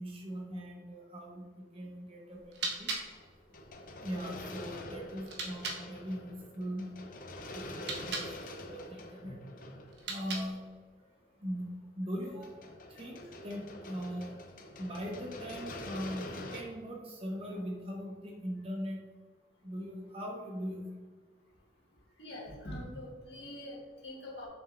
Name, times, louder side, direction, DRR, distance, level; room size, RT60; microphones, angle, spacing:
voice 1, 0.0-2.9 4.0-6.9 7.5-8.3 8.7-9.4 10.1-10.6 11.4-12.6 12.9-14.4 14.8-19.0 19.6-20.9, equal, 30° right, 0 dB, 1.1 m, -40 dB
sound 1, 2.3-5.8 7.7-8.3 9.9-10.7, right 3 dB, 70° right, 1.1 m, -40 dB
sound 2, 2.9-10.8 12.2-16.6, left 1 dB, 50° left, 0.7 m, -46 dB
voice 2, 22.2-24.5, left 1 dB, 70° left, -4 dB, 2.0 m, -44 dB
7.3 x 6.2 x 2.7 m, 1.5 s
head